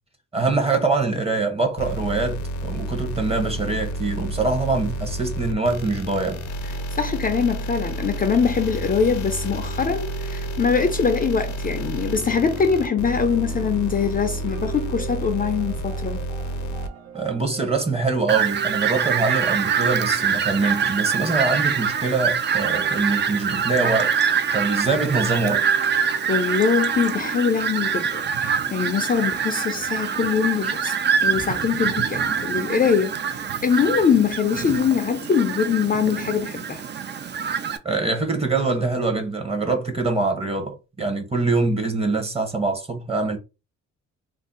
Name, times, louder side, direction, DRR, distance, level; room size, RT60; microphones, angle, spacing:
voice 1, 0.3-6.4 17.1-24.1 24.5-25.7 37.8-43.4, right 3 dB, 20° right, 0.9 m, -24 dB
sound 1, 1.8-16.9, right 1 dB, 70° left, 0.7 m, -30 dB
voice 2, 6.6-16.2 26.0-30.9 31.2-36.8, left 6 dB, 30° left, 0.5 m, -23 dB
sound 2, 8.4-26.5, right 7 dB, 75° right, 0.8 m, -42 dB
Fowl, 18.3-37.8, right 7 dB, 35° right, 0.4 m, -25 dB
2.6 x 2.0 x 3.8 m
cardioid pair, 90°, 30 cm